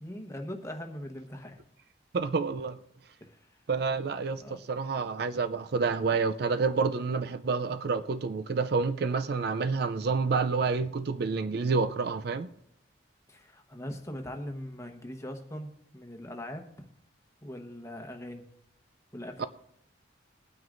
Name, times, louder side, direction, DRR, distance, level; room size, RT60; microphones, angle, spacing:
voice 1, 0.0-1.6 3.2-3.4 4.4-4.6 13.3-16.6 17.4-18.4 19.1-19.5, left 1 dB, 15° left, 1.0 m, -41 dB
voice 2, 2.1-2.8 3.7-12.5 19.4-19.5, right 4 dB, 55° right, 0.4 m, -28 dB
21.5 x 9.4 x 2.5 m
head